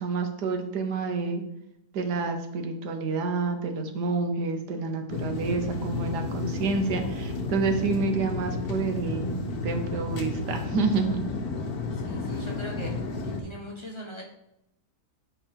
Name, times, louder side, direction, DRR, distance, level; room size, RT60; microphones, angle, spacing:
voice 1, 0.0-1.4 1.9-9.3 9.6-11.2, right 4 dB, 80° right, 6 dB, 1.5 m, -28 dB
sound 1, 5.1-13.4, left 3 dB, 70° left, 1.4 m, -32 dB
voice 2, 12.0-14.2, equal, 20° left, -2 dB, 1.3 m, -41 dB
9.1 x 3.8 x 4.5 m, 0.82 s
omnidirectional pair, 1.7 m